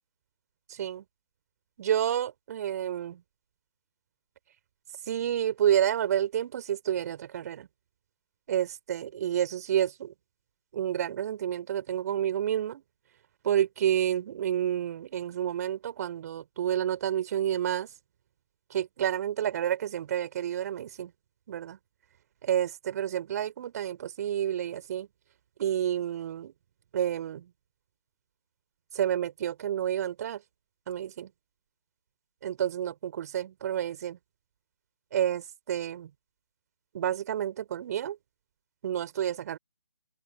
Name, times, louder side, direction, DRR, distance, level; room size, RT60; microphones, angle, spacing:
voice 1, 0.7-1.0 1.8-3.2 5.1-7.7 8.5-10.1 10.7-12.8 13.4-17.9 18.7-21.1 21.5-21.8 22.4-25.1 25.6-26.5 26.9-27.5 28.9-30.4 30.9-31.3 32.4-34.2 35.1-36.1 36.9-38.2 38.8-39.6, right 10 dB, 35° right, 5.2 m, -29 dB
open air
figure-of-eight pair, 145°, 15 cm